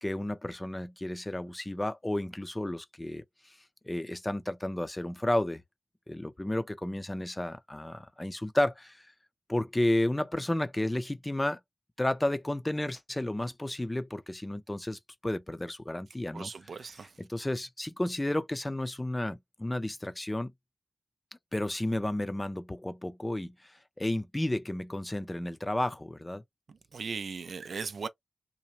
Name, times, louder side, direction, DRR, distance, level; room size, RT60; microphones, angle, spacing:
voice 1, 0.0-3.6 3.8-5.6 6.1-9.1 9.5-11.6 12.0-20.5 21.5-26.4, left 1 dB, 20° left, 0.5 m, -32 dB
voice 2, 16.3-17.1 26.9-28.1, right 5 dB, 70° right, 0.4 m, -37 dB
2.8 x 2.1 x 2.9 m
cardioid pair, 45°, 0 cm